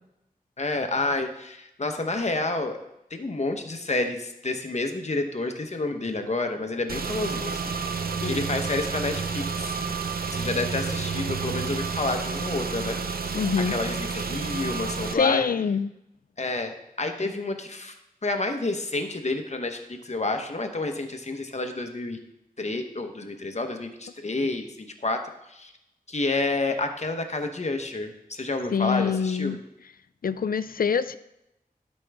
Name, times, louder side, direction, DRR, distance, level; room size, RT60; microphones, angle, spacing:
voice 1, 0.6-2.8 3.1-9.7 10.3-13.0 13.2-13.4 13.7-15.4 16.4-18.0 18.2-22.2 22.6-25.2 25.5-25.7 26.1-29.6, left 2 dB, 50° left, 5 dB, 1.0 m, -29 dB
Car / Engine, 6.9-15.1, right 5 dB, 90° right, 0.6 m, -30 dB
voice 2, 13.3-13.8 15.1-15.9 28.7-29.6 30.2-31.2, left 6 dB, 75° left, 14 dB, 0.4 m, -25 dB
12.0 x 5.3 x 3.5 m, 0.85 s
wide cardioid pair, 60°, 15 cm